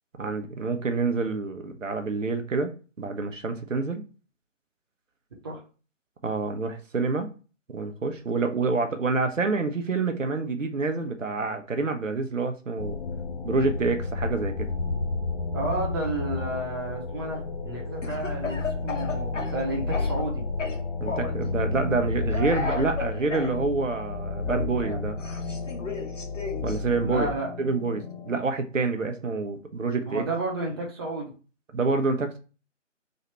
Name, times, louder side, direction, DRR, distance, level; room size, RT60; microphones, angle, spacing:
voice 1, 0.2-4.0 6.2-7.3 7.7-13.0 13.4-14.7 21.0-25.2 26.6-27.3 27.6-30.3 31.7-32.4, right 3 dB, 85° right, 6 dB, 0.8 m, -27 dB
sound 1, 12.8-28.4, left 3 dB, 45° left, 0.4 m, -31 dB
voice 2, 15.5-20.5 26.8-27.5 30.0-31.3, right 2 dB, 20° right, -3 dB, 0.8 m, -32 dB
Speech / Cough, 18.0-20.3 20.6-21.4 22.3-23.5 24.5-26.8, left 4 dB, 75° left, 1.2 m, -34 dB
3.2 x 2.8 x 4.2 m, 0.35 s
figure-of-eight pair, 150°, 37 cm